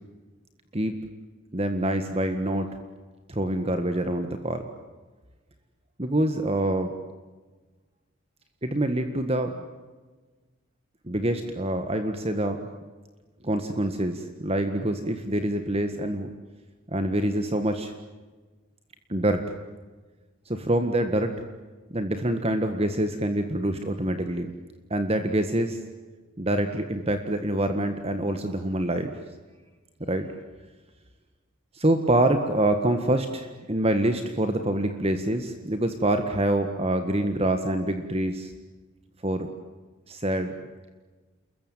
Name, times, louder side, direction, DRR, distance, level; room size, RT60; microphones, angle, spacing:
voice 1, 1.5-2.7 3.3-4.6 6.0-6.9 8.6-9.6 11.1-12.7 13.4-16.3 16.9-17.9 19.1-19.5 20.4-21.3 21.9-24.5 24.9-25.8 26.4-29.2 30.1-30.3 31.7-38.5 39.2-39.5 40.1-40.5, right 1 dB, 30° right, 7 dB, 1.7 m, -26 dB
29.0 x 22.0 x 9.3 m, 1.3 s
head